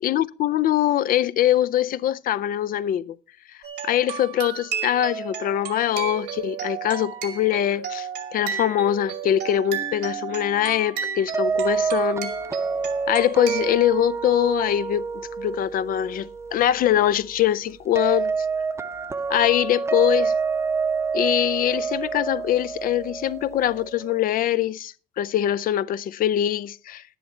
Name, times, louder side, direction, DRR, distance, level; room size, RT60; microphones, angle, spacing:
voice 1, 0.0-3.2 3.8-12.3 13.1-18.3 19.3-20.3 21.1-27.0, left 12 dB, 55° left, 0.5 m, -23 dB
sound 1, 3.6-13.8, right 8 dB, 80° right, 2.3 m, -33 dB
sound 2, 11.3-24.2, right 5 dB, 15° right, 0.7 m, -28 dB
10.5 x 10.0 x 4.3 m
cardioid pair, 110°, 17 cm